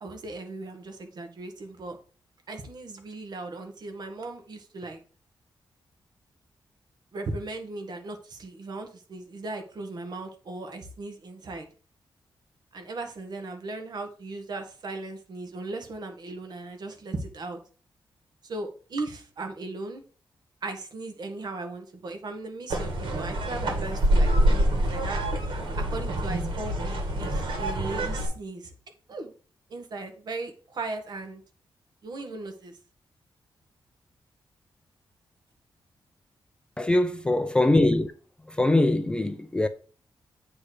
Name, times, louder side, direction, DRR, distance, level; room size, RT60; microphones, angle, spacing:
voice 1, 0.0-2.0 2.5-5.0 7.1-11.7 12.7-17.6 18.4-20.0 20.6-25.2 25.8-28.7 29.1-29.3 29.7-31.4 32.0-32.8, right 2 dB, 55° right, 1.5 m, -37 dB
sound 1, 22.7-28.3, right 1 dB, 70° right, 2.2 m, -26 dB
voice 2, 36.8-38.1 38.6-39.7, left 2 dB, 10° left, 0.4 m, -22 dB
8.5 x 3.3 x 6.4 m
wide cardioid pair, 175°, 9 cm